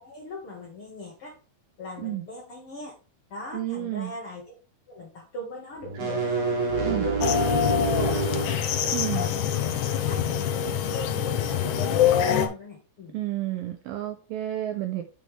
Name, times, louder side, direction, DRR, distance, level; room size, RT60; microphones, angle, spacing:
voice 1, 0.0-1.4 1.8-2.9 3.3-4.4 4.9-7.3 7.6-8.6 9.2-9.5 9.8-13.1, left 2 dB, 50° left, -1 dB, 1.7 m, -40 dB
voice 2, 3.5-4.1 6.9-7.1 8.9-9.3 13.1-15.0, right 14 dB, 80° right, 6 dB, 2.1 m, -31 dB
sound 1, 5.8-8.6, right 4 dB, 50° right, 2.1 m, -27 dB
sound 2, 7.2-12.5, left 9 dB, 75° left, 1.9 m, -25 dB
8.1 x 5.4 x 3.3 m, 0.36 s
omnidirectional pair, 4.7 m